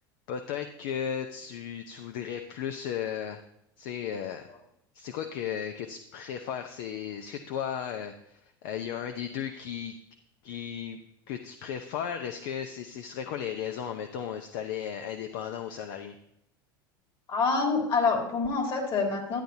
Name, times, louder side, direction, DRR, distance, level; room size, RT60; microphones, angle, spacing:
voice 1, 0.3-3.4 3.8-4.5 4.9-9.9 10.4-11.0 11.3-16.2, left 8 dB, 65° left, 6 dB, 0.7 m, -35 dB
voice 2, 17.3-19.4, left 4 dB, 45° left, 1 dB, 3.0 m, -26 dB
11.0 x 9.0 x 2.8 m, 0.78 s
hypercardioid pair, 85°, 12 cm